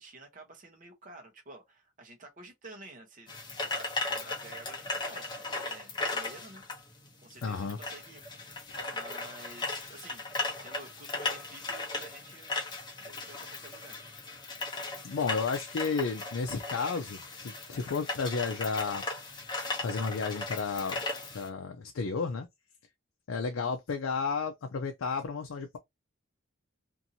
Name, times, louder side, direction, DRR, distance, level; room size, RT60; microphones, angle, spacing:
voice 1, 0.0-3.3 3.7-6.6 7.2-8.2 8.9-12.6 13.0-14.0 23.5-23.7, right 2 dB, 40° right, 0.8 m, -50 dB
sound 1, 3.3-21.5, left 3 dB, 20° left, 0.8 m, -37 dB
voice 2, 7.4-7.8 8.7-8.9 14.4-14.5 15.0-19.0 19.8-21.0 21.3-22.5 23.3-25.8, left 4 dB, 80° left, 0.5 m, -32 dB
2.7 x 2.6 x 2.7 m
head